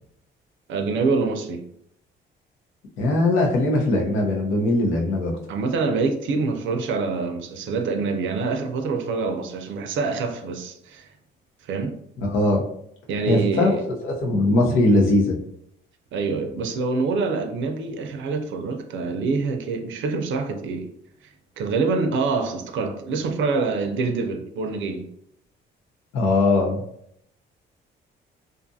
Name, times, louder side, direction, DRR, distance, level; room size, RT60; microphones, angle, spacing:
voice 1, 0.7-1.6 5.5-11.1 11.7-12.0 13.1-13.8 16.1-20.9 21.6-25.1, right 4 dB, 75° right, 0.5 m, -25 dB
voice 2, 3.0-5.3 12.2-12.6 13.3-13.8 14.0-15.3 26.1-26.8, left 2 dB, 90° left, 0.8 m, -20 dB
2.5 x 2.4 x 2.6 m
cardioid pair, 90°, 20 cm